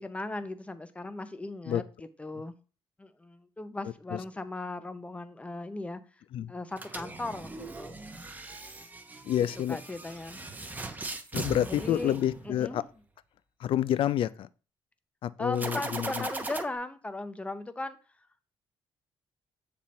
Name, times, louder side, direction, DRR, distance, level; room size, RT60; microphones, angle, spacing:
voice 1, 0.0-1.8 2.2-2.6 3.0-6.0 6.5-8.0 9.7-10.4 11.8-12.2 12.6-12.8 15.4-18.0, left 2 dB, 15° left, 0.6 m, -37 dB
voice 2, 3.8-4.2 6.3-6.5 9.2-9.8 11.3-12.8 13.6-14.5 15.2-16.3, left 11 dB, 65° left, 0.3 m, -29 dB
sound 1, 6.7-12.9 15.5-16.6, right 2 dB, 20° right, 0.7 m, -39 dB
7.0 x 4.3 x 3.2 m
cardioid pair, 100°, 10 cm